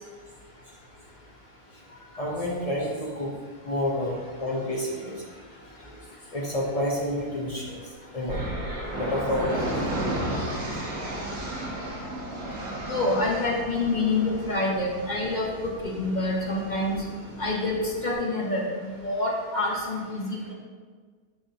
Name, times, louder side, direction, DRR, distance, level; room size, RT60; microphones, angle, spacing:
voice 1, 1.9-3.3 3.6-5.2 6.3-8.4 8.9-9.8, left 1 dB, 65° left, -2 dB, 0.3 m, -29 dB
sound 1, 8.3-18.2, right 1 dB, 80° right, 2.2 m, -34 dB
voice 2, 12.9-17.0 17.4-20.5, left 2 dB, 40° left, -2 dB, 0.7 m, -27 dB
6.8 x 5.8 x 2.8 m, 1.6 s
omnidirectional pair, 1.8 m